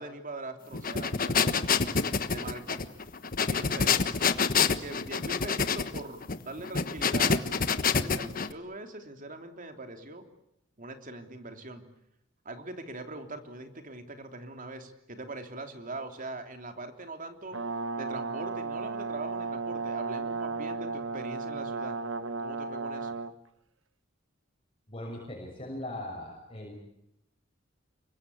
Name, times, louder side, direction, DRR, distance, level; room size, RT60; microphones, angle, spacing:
voice 1, 0.0-1.6 2.3-2.8 3.4-4.1 4.6-10.3 10.8-11.8 12.4-17.6 18.0-22.0 22.4-23.2, right 2 dB, 40° right, 6 dB, 3.2 m, -42 dB
sound 1, 0.7-8.5, left 5 dB, 45° left, 1.3 m, -27 dB
Brass instrument, 17.5-23.3, right 4 dB, 70° right, 1.4 m, -34 dB
voice 2, 24.9-26.8, left 1 dB, 30° left, -2 dB, 6.6 m, -39 dB
29.0 x 24.0 x 8.5 m, 0.78 s
head